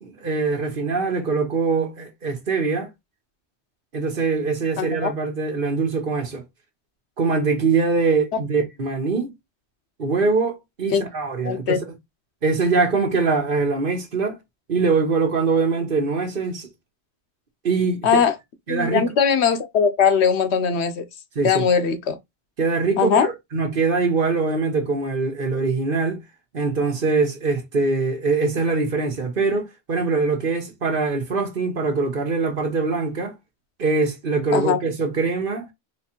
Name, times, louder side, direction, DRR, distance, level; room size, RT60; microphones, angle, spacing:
voice 1, 0.0-2.9 3.9-6.4 7.2-9.3 10.0-11.8 12.4-14.4 14.7-16.7 17.6-18.2 18.7-19.0 21.4-21.6 22.6-26.2 26.5-33.3 33.8-35.7, right 4 dB, 55° right, 1.3 m, -23 dB
voice 2, 4.8-5.1 10.9-11.0 11.4-11.8 18.0-18.3 18.7-21.0 21.4-22.2 23.0-23.3 34.5-34.8, left 7 dB, 75° left, 1.0 m, -20 dB
4.2 x 3.2 x 2.8 m
omnidirectional pair, 1.1 m